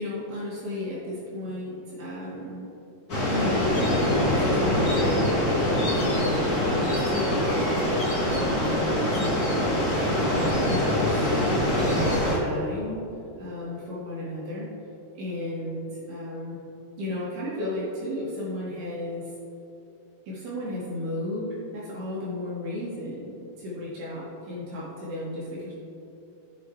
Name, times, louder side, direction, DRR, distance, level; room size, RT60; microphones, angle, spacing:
voice 1, 0.0-2.7 3.3-9.6 9.9-10.0 10.3-11.3 11.8-13.0 13.3-14.7 15.1-16.6 17.0-19.3 20.3-25.7, left 1 dB, 70° right, -7 dB, 4.2 m, -34 dB
sound 1, 3.1-12.4, left 1 dB, 30° left, 2.3 m, -24 dB
17.5 x 7.7 x 3.4 m, 2.9 s
omnidirectional pair, 4.8 m